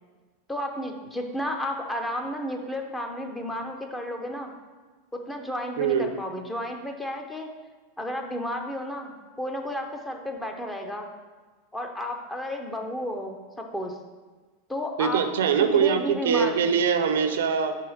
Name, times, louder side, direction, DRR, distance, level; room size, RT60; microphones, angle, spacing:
voice 1, 0.5-4.5 5.1-7.5 8.0-11.1 11.7-14.0 14.7-15.2 15.6-16.7, left 1 dB, 10° left, 3 dB, 0.7 m, -32 dB
voice 2, 5.8-6.1 15.0-17.8, right 7 dB, 85° right, 8 dB, 0.5 m, -23 dB
5.5 x 4.7 x 4.8 m, 1.3 s
supercardioid pair, 130°, 0 cm